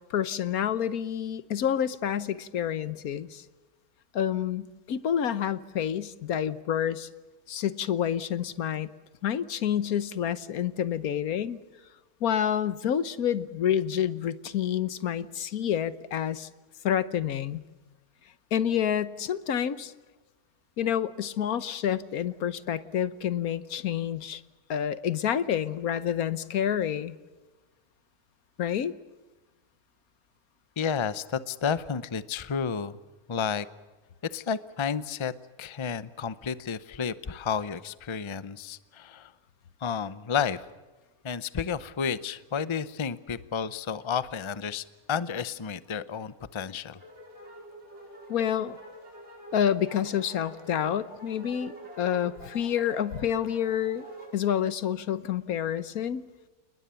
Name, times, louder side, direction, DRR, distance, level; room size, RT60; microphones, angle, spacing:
voice 1, 0.1-3.4 4.1-7.1 7.5-8.9 9.2-11.6 12.2-16.5 16.8-17.6 18.5-19.9 20.8-24.4 24.7-27.2 28.6-28.9 48.3-48.8 49.5-54.1 54.3-56.2, left 9 dB, 80° left, 15 dB, 1.4 m, -28 dB
voice 2, 30.8-33.0 33.3-33.7 34.3-39.3 39.8-40.6 41.2-47.0, left 6 dB, 30° left, 15 dB, 0.6 m, -31 dB
sound 1, 47.0-54.4, equal, 50° right, 5.4 m, -46 dB
29.5 x 20.0 x 7.0 m, 1.2 s
omnidirectional pair, 1.5 m